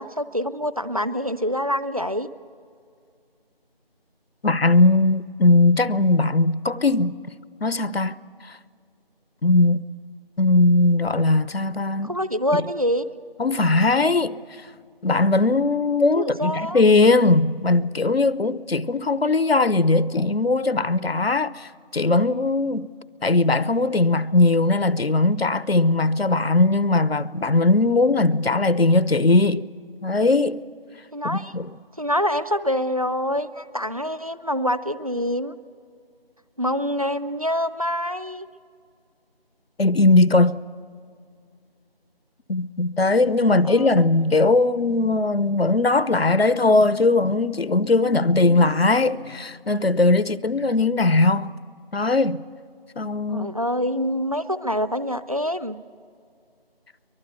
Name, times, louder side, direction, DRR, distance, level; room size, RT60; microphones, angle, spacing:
voice 1, 0.0-2.3 12.0-13.1 16.1-16.8 31.1-31.5 32.0-35.5 36.6-38.5 43.4-44.1 53.3-55.8, equal, 35° right, 0.6 m, -26 dB
voice 2, 4.4-7.2 7.6-8.2 8.4-8.6 9.4-9.8 10.4-12.1 13.4-14.4 15.0-22.9 23.2-29.7 30.0-30.6 31.2-31.7 39.8-40.6 42.5-51.5 51.9-52.4 53.0-53.5, left 2 dB, 80° left, 0.8 m, -19 dB
24.0 x 19.5 x 8.2 m
figure-of-eight pair, 170°, 30 cm